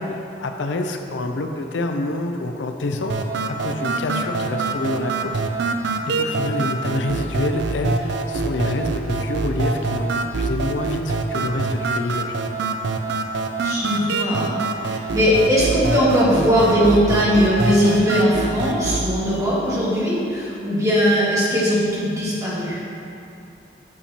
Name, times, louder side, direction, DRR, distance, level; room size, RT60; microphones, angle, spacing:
voice 1, 0.0-3.1 3.6-5.4 6.2-12.3, left 2 dB, 90° left, 5 dB, 0.5 m, -27 dB
sound 1, 3.1-19.1, right 3 dB, 70° right, 0.5 m, -25 dB
voice 2, 13.6-22.8, equal, 20° right, -8 dB, 1.6 m, -19 dB
8.5 x 6.8 x 2.9 m, 2.6 s
head